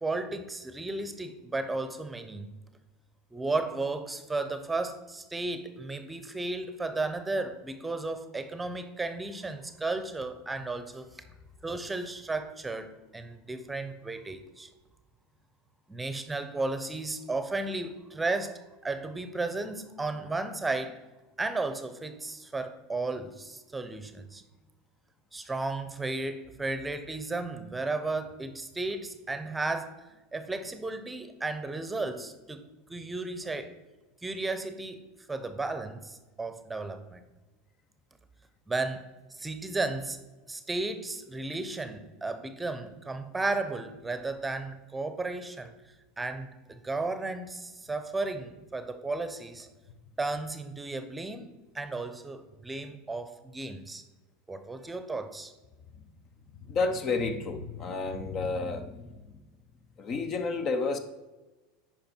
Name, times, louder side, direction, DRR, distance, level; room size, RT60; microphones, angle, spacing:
voice 1, 0.0-2.5 3.3-11.2 11.6-14.7 15.9-21.0 21.4-24.4 25.3-32.6 32.9-33.7 34.2-35.0 35.3-37.2 38.7-45.7 46.2-49.7 50.2-54.0 54.5-55.5, right 3 dB, 10° right, 0.8 m, -34 dB
voice 2, 56.7-59.1 60.0-61.0, left 3 dB, 45° left, 0.9 m, -30 dB
10.5 x 4.6 x 4.6 m
hypercardioid pair, 85°, 0 cm